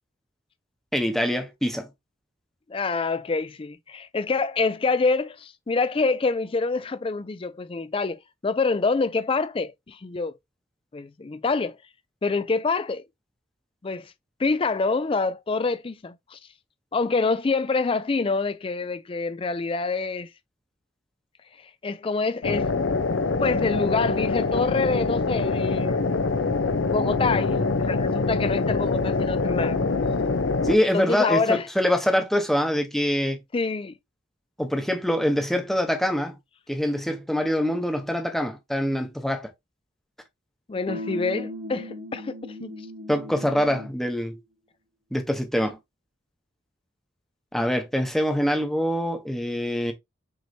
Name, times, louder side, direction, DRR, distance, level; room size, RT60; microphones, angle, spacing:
voice 1, 0.9-1.9 30.6-33.4 34.6-36.4 36.7-39.5 43.1-44.4 45.1-45.8 47.5-49.9, equal, ahead, 0.8 m, -24 dB
voice 2, 2.7-10.4 10.9-11.8 12.2-13.0 13.8-14.1 14.4-16.4 16.9-20.3 21.8-22.7 23.4-26.0 26.9-29.8 30.9-31.7 33.5-33.9 40.7-42.8, left 4 dB, 25° left, 0.4 m, -26 dB
sound 1, 22.4-30.8, left 3 dB, 75° left, 0.6 m, -24 dB
sound 2, 40.9-44.0, left 1 dB, 80° right, 2.0 m, -37 dB
6.1 x 3.1 x 2.7 m
head